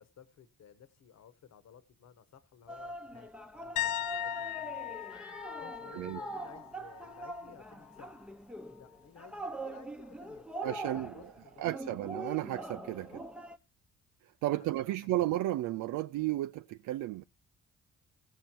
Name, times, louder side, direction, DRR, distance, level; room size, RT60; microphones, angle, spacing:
voice 1, 0.0-5.0 5.6-8.3 8.8-10.5 10.8-12.1 12.9-13.2 14.4-14.5, left 8 dB, 60° left, 1.3 m, -56 dB
sound 1, 2.7-13.6, right 1 dB, 5° right, 0.9 m, -43 dB
sound 2, 3.8-7.5 7.8-8.2 11.1-11.2, left 14 dB, 90° left, 0.6 m, -39 dB
voice 2, 10.6-11.2 11.6-13.1 14.2-17.2, right 15 dB, 80° right, 0.5 m, -33 dB
15.5 x 6.5 x 4.5 m
cardioid pair, 90°, 30 cm